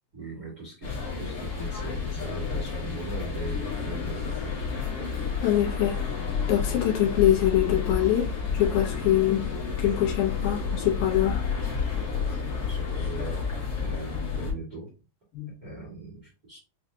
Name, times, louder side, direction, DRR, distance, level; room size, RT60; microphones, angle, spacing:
voice 1, 0.1-4.8 12.1-13.4 13.8-14.9 15.6-16.6, right 2 dB, 90° right, 0.8 m, -40 dB
sound 1, 0.8-14.5, left 5 dB, 60° left, 1.5 m, -30 dB
voice 2, 5.4-6.0 6.5-9.5 9.8-11.4 15.3-15.5, left 12 dB, 75° left, 2.3 m, -24 dB
5.9 x 2.4 x 2.7 m
omnidirectional pair, 4.2 m